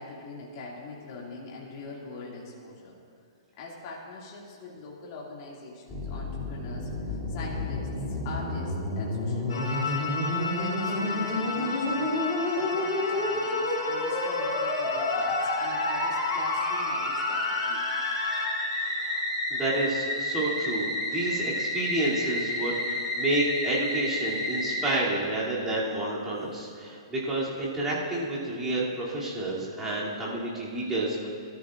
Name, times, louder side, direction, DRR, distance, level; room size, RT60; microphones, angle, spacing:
voice 1, 0.0-2.9 3.6-9.9 10.3-17.8, left 3 dB, 35° left, -4 dB, 2.4 m, -42 dB
Musical instrument, 5.9-25.0, left 1 dB, 15° left, 2.9 m, -30 dB
sound 1, 9.5-18.5, left 4 dB, 90° left, 3.2 m, -33 dB
voice 2, 19.5-31.3, right 2 dB, 10° right, -8 dB, 2.9 m, -30 dB
21.5 x 13.0 x 2.6 m, 2.3 s
hypercardioid pair, 160°, 3 cm